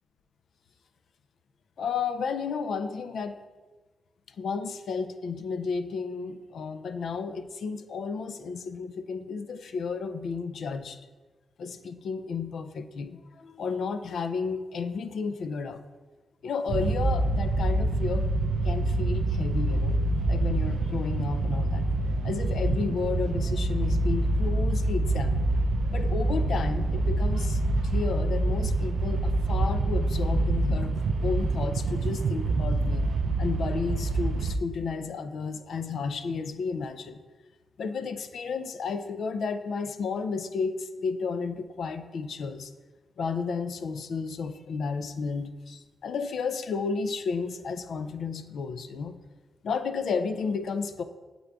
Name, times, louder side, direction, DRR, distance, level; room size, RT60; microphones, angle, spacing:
voice 1, 1.8-3.4 4.4-11.0 11.6-15.8 16.4-18.3 18.6-20.0 20.3-21.8 22.2-25.5 25.9-31.0 31.2-33.1 33.4-37.2 37.8-42.7 43.2-49.2 49.6-51.0, left 5 dB, 70° left, 9 dB, 0.4 m, -32 dB
sound 1, 16.7-34.6, right 2 dB, 70° right, 0.3 m, -26 dB
8.1 x 3.7 x 3.4 m, 1.3 s
wide cardioid pair, 135°, 0 cm